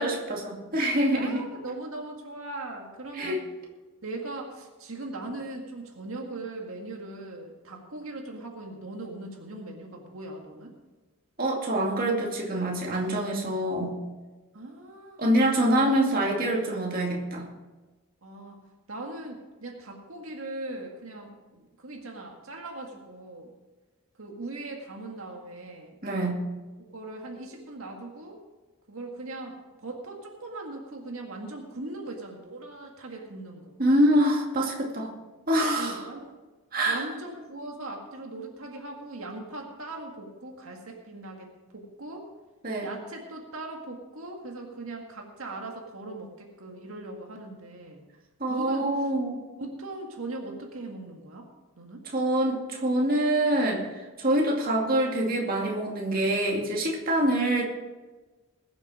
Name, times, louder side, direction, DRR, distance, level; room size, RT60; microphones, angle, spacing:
voice 1, 0.0-1.5 3.1-3.4 11.4-14.0 15.2-17.5 26.0-26.4 33.8-35.1 35.5-36.1 36.7-37.0 42.6-42.9 48.4-49.4 52.0-53.8 54.2-57.6, right 1 dB, 40° right, -2 dB, 2.3 m, -25 dB
voice 2, 1.1-3.4 4.0-10.7 14.5-15.4 18.2-18.6 18.9-23.5 24.2-26.0 26.9-28.4 28.9-33.8 35.8-36.4 36.9-42.3 42.8-48.0 48.5-48.9 49.6-51.5 51.8-52.0, right 2 dB, 75° right, 1 dB, 1.9 m, -39 dB
21.0 x 7.3 x 5.0 m, 1.2 s
head